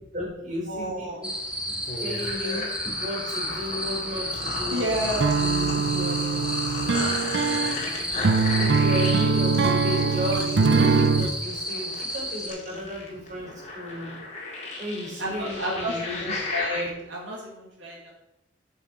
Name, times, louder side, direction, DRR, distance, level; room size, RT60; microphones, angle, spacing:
voice 1, 0.1-1.1 1.5-4.9 5.4-6.3 8.6-14.2 14.8-16.5, left 1 dB, 40° right, -2 dB, 4.1 m, -34 dB
voice 2, 0.7-1.2 2.4-2.7 4.7-5.3 14.9-18.1, equal, 80° right, -5 dB, 2.7 m, -31 dB
sound 1, 1.2-12.5, equal, 5° right, 1.1 m, -32 dB
sound 2, 1.9-16.8, left 2 dB, 35° left, 2.1 m, -35 dB
sound 3, 5.2-11.3, right 4 dB, 60° right, 0.6 m, -22 dB
12.5 x 5.5 x 4.3 m, 0.89 s
head